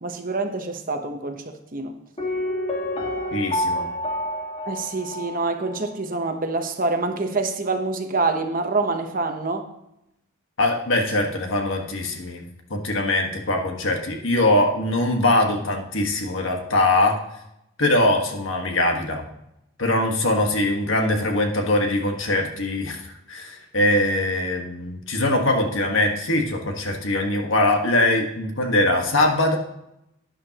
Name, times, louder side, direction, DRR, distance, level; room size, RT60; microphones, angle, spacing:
voice 1, 0.0-2.0 4.6-9.7, right 3 dB, 40° right, 6 dB, 1.0 m, -26 dB
Piano, 2.2-5.9 6.2-6.3, left 1 dB, 30° left, 1.8 m, -28 dB
voice 2, 3.3-3.9 10.6-12.4 12.7-17.2 17.8-19.2 19.8-23.0 23.3-29.6, left 1 dB, 65° left, 2 dB, 1.6 m, -22 dB
11.5 x 10.0 x 2.9 m, 0.83 s
head